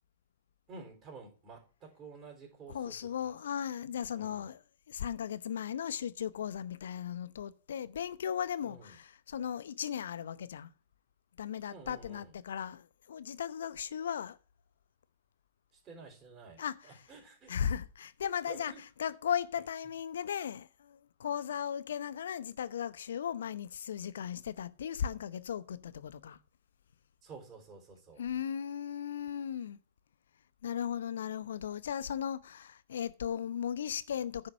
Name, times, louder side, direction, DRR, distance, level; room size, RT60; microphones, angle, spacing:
voice 1, 0.7-2.9 3.2-3.3 4.1-4.5 8.6-9.0 11.7-12.3 15.7-17.6 18.5-19.1 27.2-28.2, right 4 dB, 25° right, 4.0 m, -51 dB
voice 2, 2.7-10.7 11.4-14.4 16.6-17.0 17.5-18.7 19.0-26.4 28.2-29.8 30.6-34.5, left 8 dB, 65° left, 0.8 m, -37 dB
10.0 x 5.9 x 6.2 m
figure-of-eight pair, 105°, 0 cm